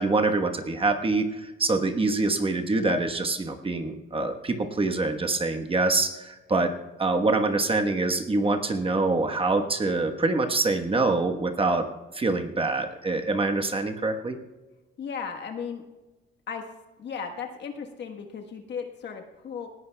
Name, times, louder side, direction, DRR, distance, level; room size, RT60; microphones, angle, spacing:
voice 1, 0.0-6.7 7.0-11.9 12.1-14.4, right 3 dB, 25° right, 5 dB, 1.2 m, -25 dB
voice 2, 15.0-15.8 16.5-16.7 17.0-19.7, left 6 dB, 60° left, 3 dB, 1.3 m, -36 dB
19.0 x 14.5 x 2.3 m, 1.1 s
cardioid pair, 90°, 20 cm